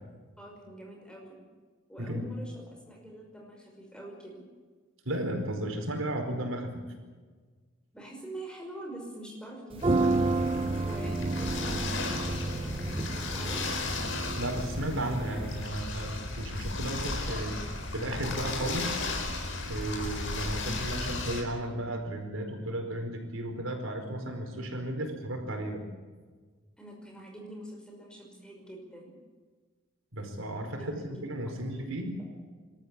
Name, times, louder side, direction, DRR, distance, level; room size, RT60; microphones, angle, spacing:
voice 1, 0.4-1.4 1.9-4.4 7.9-10.3 10.8-13.6 26.8-29.2 30.7-31.5, right 1 dB, 5° left, 0 dB, 5.5 m, -45 dB
voice 2, 5.0-6.8 14.4-19.0 19.7-25.8 30.1-32.1, right 1 dB, 90° right, 3 dB, 4.7 m, -34 dB
sound 1, 9.7-15.6, right 2 dB, 25° right, 0.6 m, -31 dB
sound 2, 9.8-21.4, left 2 dB, 70° left, 4.6 m, -35 dB
27.0 x 13.5 x 8.7 m, 1.4 s
head